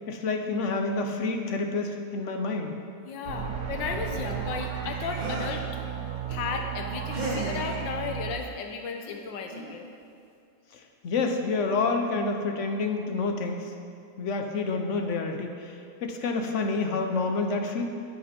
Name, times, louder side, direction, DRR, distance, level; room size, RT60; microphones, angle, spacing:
voice 1, 0.1-2.7 10.7-13.7 14.2-17.8, left 3 dB, 55° left, 4 dB, 0.9 m, -28 dB
voice 2, 3.0-5.8 6.3-9.9, left 5 dB, 85° left, 4 dB, 1.4 m, -34 dB
sound 1, 3.3-8.3, right 9 dB, 65° right, 1.6 m, -34 dB
sound 2, 5.1-5.7 7.1-7.6 9.0-9.2 9.5-9.8, right 2 dB, 25° right, 1.8 m, -34 dB
10.0 x 8.7 x 4.3 m, 2.5 s
omnidirectional pair, 2.0 m